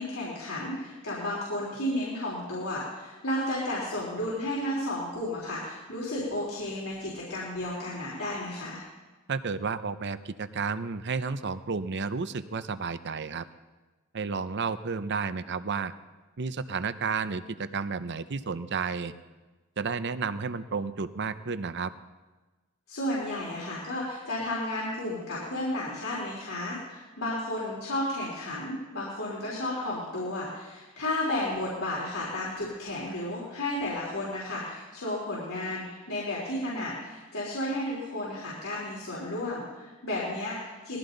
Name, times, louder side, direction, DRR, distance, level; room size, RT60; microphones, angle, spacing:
voice 1, 0.0-8.8 22.9-41.0, left 1 dB, 80° left, -6 dB, 3.8 m, -33 dB
voice 2, 9.3-13.4 14.1-15.9 16.4-19.1 19.8-21.9, right 5 dB, 60° right, 12 dB, 0.7 m, -32 dB
20.0 x 15.0 x 4.0 m, 1.2 s
head